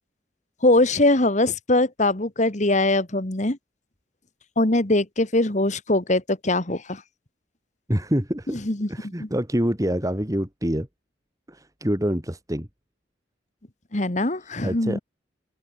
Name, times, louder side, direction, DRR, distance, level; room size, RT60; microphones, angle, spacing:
voice 1, 0.6-3.6 4.6-7.0 8.6-8.9 9.2-9.3 13.9-15.0, left 2 dB, 40° left, 1.8 m, -22 dB
voice 2, 7.9-8.6 8.9-10.9 11.5-12.7 14.6-15.0, equal, 20° right, 2.5 m, -26 dB
open air
head